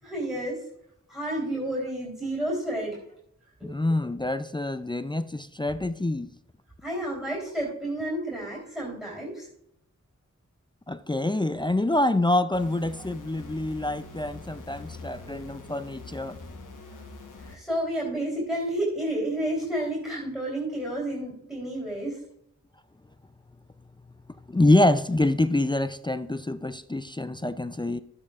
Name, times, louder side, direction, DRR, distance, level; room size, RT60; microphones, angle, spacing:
voice 1, 0.0-0.6 1.1-3.0 3.6-3.7 6.8-9.5 15.3-15.4 16.9-17.0 17.4-22.2, right 1 dB, ahead, 3.4 m, -30 dB
voice 2, 3.6-6.3 10.9-16.4 24.5-28.0, left 1 dB, 15° left, 0.4 m, -26 dB
sound 1, 12.5-17.6, left 3 dB, 80° left, 1.2 m, -44 dB
12.5 x 8.3 x 2.4 m
wide cardioid pair, 55°, 31 cm